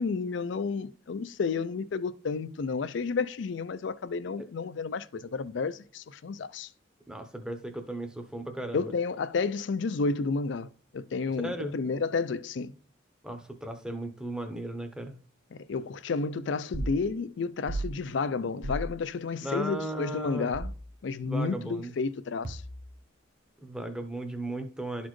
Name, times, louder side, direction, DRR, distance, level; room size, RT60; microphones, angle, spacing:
voice 1, 0.0-6.7 8.7-12.7 15.5-20.7 21.0-22.6, left 4 dB, 70° left, 0.4 m, -31 dB
voice 2, 7.1-8.9 11.4-11.8 13.2-15.2 19.4-20.5 21.2-21.9 23.6-25.1, right 1 dB, 5° right, 0.7 m, -36 dB
sound 1, 16.7-17.0 17.7-17.9 18.6-18.9 20.5-20.8 22.4-23.0, right 1 dB, 50° right, 0.7 m, -34 dB
12.0 x 4.1 x 3.1 m
head